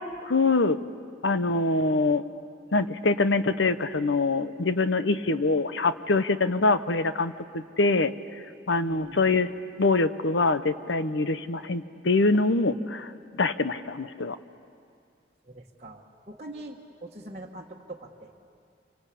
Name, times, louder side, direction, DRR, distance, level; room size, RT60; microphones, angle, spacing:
voice 1, 0.3-0.8 1.2-2.2 2.7-8.1 8.7-9.5 9.8-13.1 13.4-14.4, left 3 dB, 80° left, 12 dB, 0.9 m, -24 dB
voice 2, 8.7-9.3 15.5-18.3, right 1 dB, 35° right, -4 dB, 1.4 m, -43 dB
27.0 x 24.5 x 8.5 m, 2.3 s
head